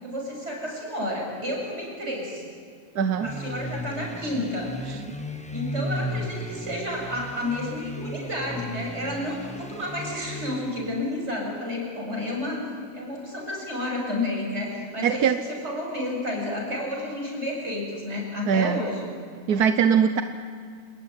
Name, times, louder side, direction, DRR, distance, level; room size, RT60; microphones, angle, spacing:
voice 1, 0.0-2.4 3.2-4.8 5.5-15.3 15.6-19.1, left 1 dB, 45° right, -1 dB, 7.5 m, -31 dB
voice 2, 2.9-3.3 4.9-5.0 15.0-15.4 18.5-18.8 19.5-20.2, right 7 dB, 90° right, 8 dB, 1.4 m, -21 dB
sound 1, 3.2-11.0, equal, 5° left, 1.2 m, -35 dB
28.5 x 19.5 x 9.7 m, 2.1 s
omnidirectional pair, 1.6 m